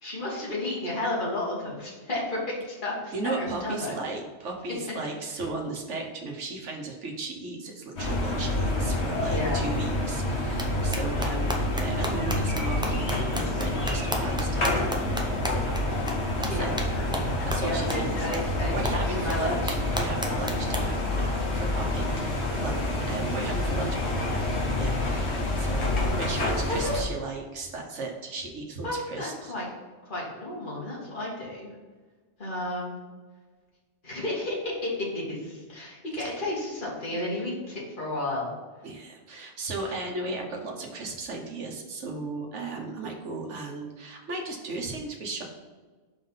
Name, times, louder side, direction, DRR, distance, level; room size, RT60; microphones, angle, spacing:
voice 1, 0.0-3.9 5.3-5.4 9.3-9.6 16.5-17.3 17.6-19.6 26.7-26.9 28.8-29.7 30.1-31.7 32.4-33.0 34.0-38.5 39.9-40.0, left 1 dB, 45° left, -5 dB, 2.2 m, -32 dB
voice 2, 3.1-14.7 16.4-16.7 17.4-18.1 18.7-29.5 38.8-45.4, right 3 dB, 85° right, 1 dB, 1.4 m, -36 dB
sound 1, 8.0-27.0, left 1 dB, 65° left, 1.6 m, -28 dB
sound 2, 10.6-10.7 10.9-15.8 16.1-16.2 16.4-16.5 16.8-16.9 17.1-17.2 17.5-17.6 17.9-18.0 18.3-18.4 18.8-18.9 19.3-19.4 19.7-20.8, equal, 5° right, 0.6 m, -32 dB
5.6 x 4.6 x 5.5 m, 1.4 s
omnidirectional pair, 1.2 m